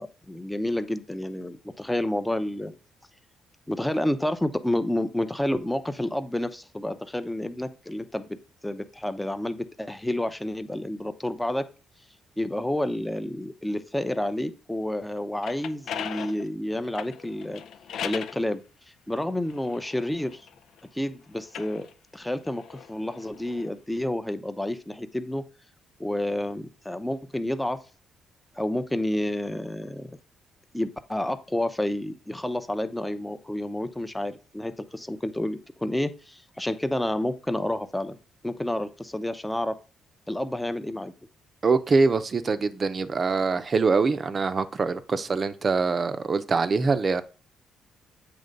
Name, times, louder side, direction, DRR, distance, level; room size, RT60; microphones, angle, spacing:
voice 1, 0.0-2.7 3.7-8.3 8.6-11.7 12.4-17.6 18.0-18.6 19.1-20.5 20.9-21.9 22.1-25.4 26.0-27.8 28.6-30.1 30.7-38.2 38.4-39.7 40.3-41.1, left 1 dB, 5° left, 0.7 m, -29 dB
sound 1, 15.2-18.4 19.2-20.8 21.4-23.7, left 8 dB, 75° left, 0.5 m, -39 dB
voice 2, 41.6-47.2, right 4 dB, 40° right, 0.6 m, -24 dB
7.8 x 3.2 x 5.2 m
cardioid pair, 90°, 0 cm